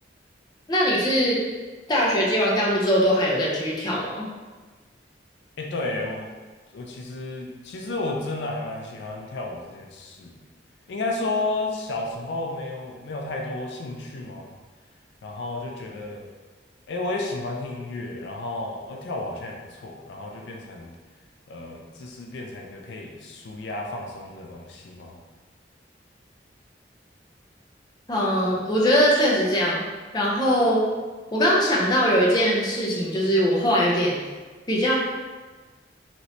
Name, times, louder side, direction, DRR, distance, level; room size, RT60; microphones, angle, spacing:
voice 1, 0.7-1.4 1.9-4.2 28.1-29.8 30.1-30.8 31.3-34.1 34.7-34.9, equal, 25° left, -4 dB, 0.5 m, -21 dB
voice 2, 5.6-6.3 6.7-10.3 10.9-14.5 15.2-16.2 16.9-21.0 21.5-25.2, left 2 dB, 75° left, 1 dB, 0.4 m, -32 dB
3.1 x 2.9 x 2.7 m, 1.3 s
head